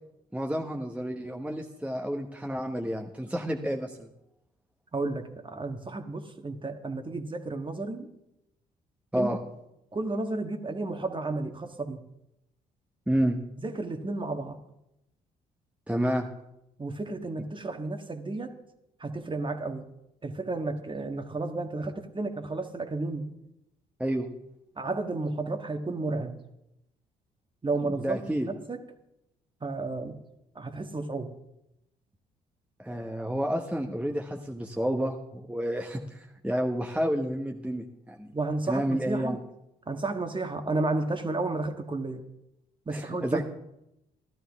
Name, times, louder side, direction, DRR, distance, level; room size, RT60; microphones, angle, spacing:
voice 1, 0.3-4.1 9.1-9.4 13.1-13.4 15.9-16.3 24.0-24.3 27.8-28.5 32.8-38.3 38.7-39.4 42.9-43.4, equal, 5° right, 2 dB, 1.2 m, -30 dB
voice 2, 4.9-8.1 9.1-9.3 9.9-12.0 13.6-14.6 16.8-18.6 19.0-19.9 20.2-23.3 24.8-26.3 27.6-28.8 29.6-30.2 30.5-31.3 38.3-39.4 39.9-42.2 42.9-43.4, right 3 dB, 25° right, 6 dB, 1.6 m, -32 dB
14.5 x 12.0 x 3.6 m, 0.86 s
hypercardioid pair, 50°, 19 cm